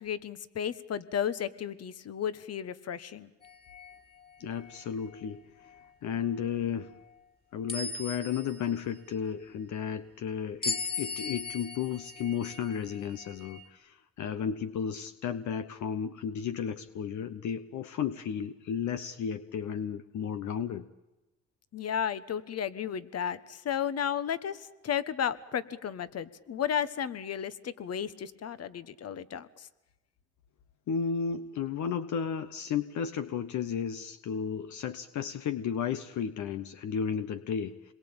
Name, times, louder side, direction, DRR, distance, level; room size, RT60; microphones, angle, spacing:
voice 1, 0.0-3.3 21.7-29.7, left 8 dB, 55° left, 15 dB, 1.3 m, -33 dB
sound 1, 3.4-4.0 4.6-4.8 7.7-8.8 10.6-13.7, left 4 dB, 30° left, 3.7 m, -38 dB
voice 2, 4.4-5.7 6.0-6.9 7.5-20.9 30.9-37.9, left 7 dB, 70° left, 10 dB, 1.1 m, -33 dB
27.0 x 22.0 x 8.9 m, 1.0 s
cardioid pair, 90°, 30 cm